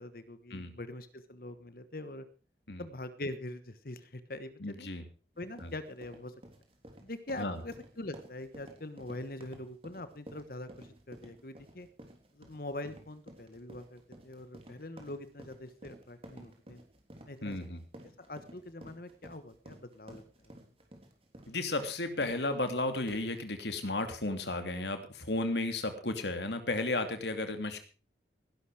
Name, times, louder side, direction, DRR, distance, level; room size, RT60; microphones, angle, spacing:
voice 1, 0.0-2.3 2.8-4.9 5.4-6.3 7.0-11.9 12.3-16.8 17.3-20.2, left 1 dB, 55° left, 12 dB, 1.2 m, -43 dB
voice 2, 4.6-5.0 5.6-5.7 7.4-7.6 17.4-17.8 21.5-27.8, left 2 dB, 75° left, 8 dB, 2.8 m, -34 dB
sound 1, 5.4-23.4, right 1 dB, 35° right, 3.4 m, -53 dB
18.0 x 11.5 x 4.9 m, 0.36 s
head